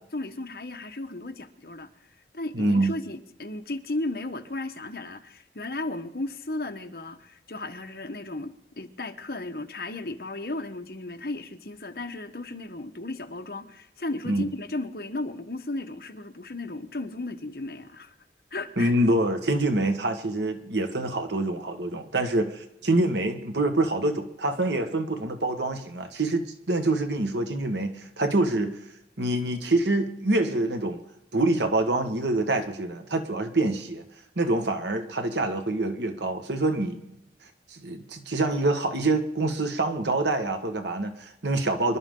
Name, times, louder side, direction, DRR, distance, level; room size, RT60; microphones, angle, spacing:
voice 1, 0.1-1.9 2.3-18.1 18.5-18.9, left 2 dB, 55° left, 1.3 m, -35 dB
voice 2, 2.5-2.9 14.3-14.4 18.8-28.8 29.2-31.0 31.3-34.0 34.4-37.0 37.7-42.0, right 2 dB, 80° right, 1.6 m, -26 dB
25.5 x 12.0 x 3.8 m
head